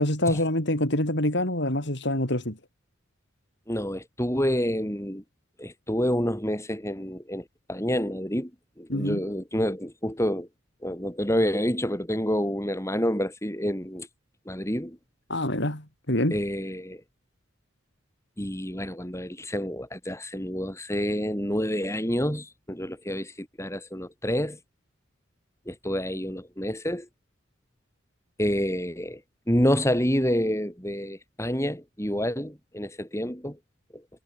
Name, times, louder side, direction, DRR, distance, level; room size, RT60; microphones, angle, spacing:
voice 1, 0.0-2.6 8.9-9.2 15.3-16.4, left 1 dB, 55° left, 5.5 m, -26 dB
voice 2, 3.7-5.2 5.6-8.5 8.8-10.5 10.8-14.1 14.5-15.0 16.3-17.0 18.4-24.6 25.7-27.1 28.4-29.2 29.5-33.6, equal, 15° left, 5.5 m, -28 dB
head